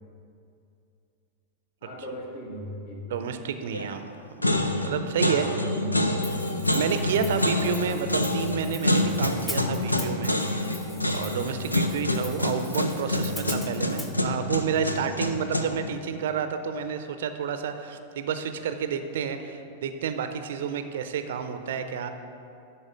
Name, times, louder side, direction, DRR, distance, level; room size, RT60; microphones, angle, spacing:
voice 1, 1.8-3.3 5.4-6.2, right 1 dB, 55° left, -3 dB, 2.2 m, -38 dB
voice 2, 3.1-4.0 4.4-5.6 6.0-6.1 6.7-10.9 11.1-22.1, right 7 dB, 60° right, 9 dB, 0.5 m, -30 dB
sound 1, 3.7-4.1 4.4-15.9, left 1 dB, 85° left, 0.5 m, -27 dB
Hi-hat, 6.2-14.1, left 1 dB, 15° left, 0.9 m, -42 dB
11.5 x 4.2 x 6.2 m, 2.6 s
figure-of-eight pair, 90°, 0 cm